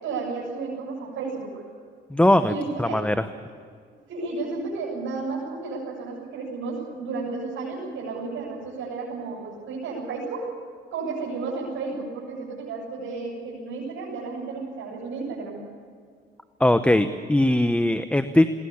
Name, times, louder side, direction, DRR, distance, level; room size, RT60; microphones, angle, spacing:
voice 1, 0.0-1.6 2.5-3.0 4.1-10.5 10.9-15.7, right 4 dB, 80° right, -4 dB, 7.5 m, -32 dB
voice 2, 2.1-2.5 2.8-3.3 16.6-18.6, left 1 dB, 5° left, 10 dB, 0.9 m, -20 dB
21.0 x 18.5 x 8.6 m, 2.1 s
cardioid pair, 90°, 20 cm